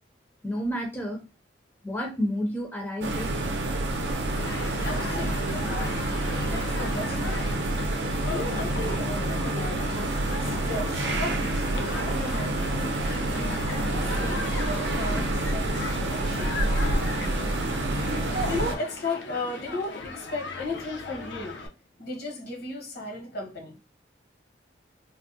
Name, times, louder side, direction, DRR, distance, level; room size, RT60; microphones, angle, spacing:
voice 1, 0.4-1.2 1.8-3.3, equal, 10° left, 0.5 m, -30 dB
sound 1, 3.0-18.8, right 1 dB, 80° right, 0.6 m, -28 dB
Human group actions, 4.3-21.7, left 3 dB, 75° left, 0.6 m, -38 dB
voice 2, 4.8-5.8 6.4-7.5 8.3-10.1 10.4-13.5 13.9-14.5 14.9-16.7 18.2-21.6 22.0-23.8, left 2 dB, 60° left, 1.0 m, -36 dB
3.4 x 2.1 x 2.7 m
head